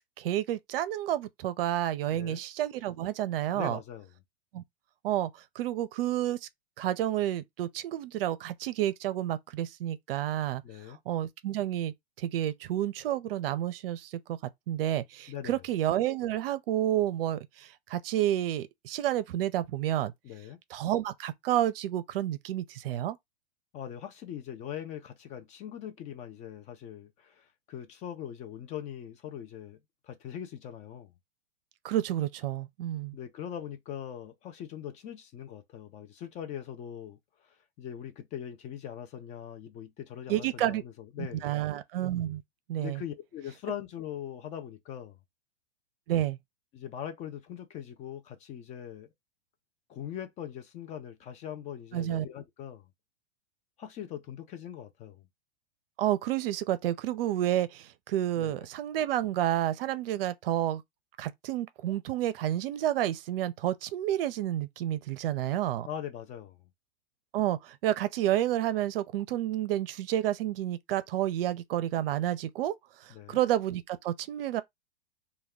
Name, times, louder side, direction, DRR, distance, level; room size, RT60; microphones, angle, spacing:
voice 1, 0.2-3.8 4.5-4.6 5.0-5.3 5.6-6.5 6.8-10.6 11.1-14.4 14.7-20.1 20.7-23.2 31.8-33.2 40.3-40.8 41.2-42.4 42.7-43.0 46.1-46.4 51.9-52.3 56.0-60.8 61.2-65.9 67.3-72.7 73.0-74.6, right 12 dB, 60° right, 0.5 m, -30 dB
voice 2, 2.1-2.4 3.5-4.1 10.6-11.0 15.3-15.6 20.2-20.6 23.7-29.8 30.0-31.1 33.1-41.5 42.8-45.2 46.7-49.1 49.9-52.9 53.8-55.2 58.4-58.7 65.9-66.6 73.1-73.4, left 9 dB, 25° left, 0.3 m, -41 dB
2.2 x 2.2 x 3.4 m
hypercardioid pair, 110°, 32 cm